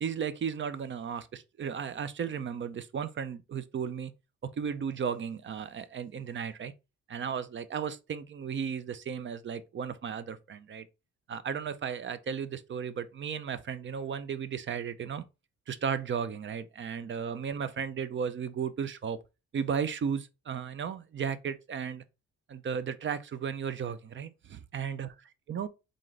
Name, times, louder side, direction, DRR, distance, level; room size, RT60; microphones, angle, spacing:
voice 1, 0.0-4.1 4.6-6.7 7.1-10.9 11.3-15.2 15.7-19.2 19.5-22.0 22.5-25.1 25.5-25.7, right 7 dB, 40° right, 0.5 m, -35 dB
3.8 x 3.7 x 3.2 m
cardioid pair, 90°, 30 cm